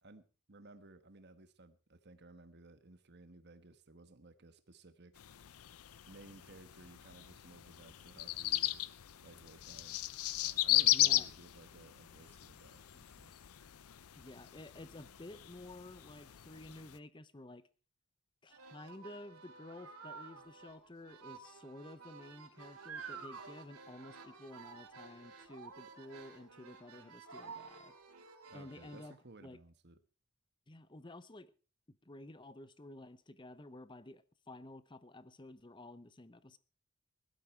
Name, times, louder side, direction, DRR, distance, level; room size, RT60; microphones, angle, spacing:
voice 1, 0.0-5.2 6.1-8.8 9.2-10.0 10.4-13.3 28.5-30.0, right 2 dB, 50° right, 1.4 m, -57 dB
sound 1, 5.2-17.0, left 15 dB, 80° left, 0.6 m, -37 dB
voice 2, 10.9-11.3 14.2-17.6 18.4-27.9 28.5-29.1 29.4-29.6 30.7-31.5 31.9-36.6, left 1 dB, 20° left, 0.7 m, -52 dB
sound 2, 18.5-29.1, right 5 dB, 90° right, 2.9 m, -52 dB
17.0 x 12.5 x 4.5 m
head